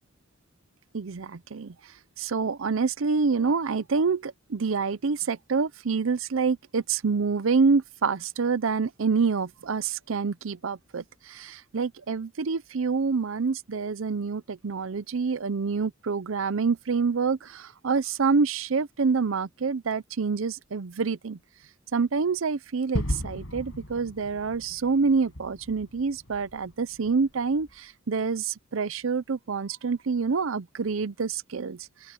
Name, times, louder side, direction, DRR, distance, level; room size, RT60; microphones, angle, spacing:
voice 1, 0.9-1.7 2.2-21.4 21.9-31.8, right 5 dB, 75° right, 0.6 m, -27 dB
Gunshot gunfire / Fireworks / Boom, 22.9-27.7, equal, 75° left, 6.5 m, -36 dB
open air
head